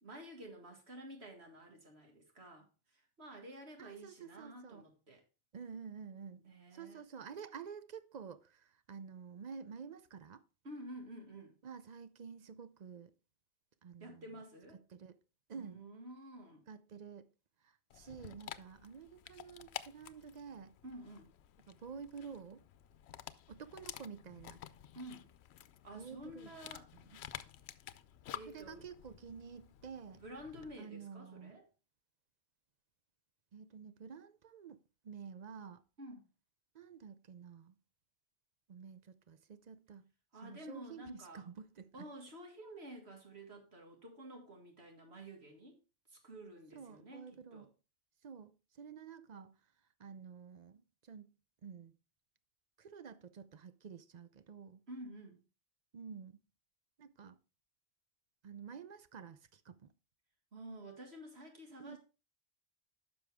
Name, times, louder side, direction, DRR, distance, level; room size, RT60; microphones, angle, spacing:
voice 1, 0.0-2.7 2.9-5.2 6.3-7.0 10.6-11.6 14.0-14.8 15.5-16.6 20.8-21.3 24.9-25.3 25.8-26.9 28.3-28.9 30.2-31.6 36.0-36.2 40.3-41.5 41.9-45.8 46.1-47.7 54.9-55.4 60.5-62.0, right 1 dB, 85° right, 2.3 m, -51 dB
voice 2, 3.8-4.8 5.5-6.4 6.7-10.4 11.6-13.1 13.8-14.3 14.9-15.2 15.5-15.8 16.7-17.3 17.6-20.7 21.7-22.6 23.5-24.6 25.9-26.5 27.1-27.2 28.5-30.2 30.8-31.6 33.5-34.8 35.0-35.8 36.7-37.8 38.7-40.1 40.4-42.1 46.7-47.7 48.2-49.5 50.0-51.3 51.6-52.0 52.8-54.8 55.9-56.4 57.0-57.4 58.4-59.9 61.8-62.0, right 6 dB, 50° right, 0.6 m, -50 dB
Dog, 17.9-30.8, left 11 dB, 90° left, 0.8 m, -51 dB
10.0 x 6.1 x 3.4 m
omnidirectional pair, 1.1 m